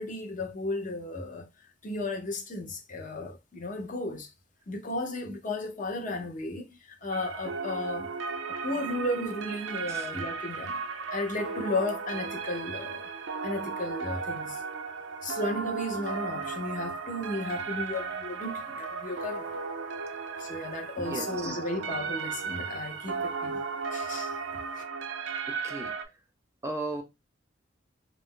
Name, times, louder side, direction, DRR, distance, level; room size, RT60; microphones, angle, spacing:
voice 1, 0.0-1.5 1.8-4.3 4.7-8.1 8.6-10.8 11.1-13.1 13.4-14.6 15.2-19.6 20.4-23.6 23.9-24.3 24.8-24.9, left 2 dB, 45° left, 0.7 m, -34 dB
sound 1, 7.1-26.0, right 5 dB, 80° right, 0.4 m, -35 dB
voice 2, 21.0-21.6 25.5-25.9 26.6-27.0, right 2 dB, 15° right, 0.5 m, -36 dB
2.4 x 2.0 x 3.6 m
head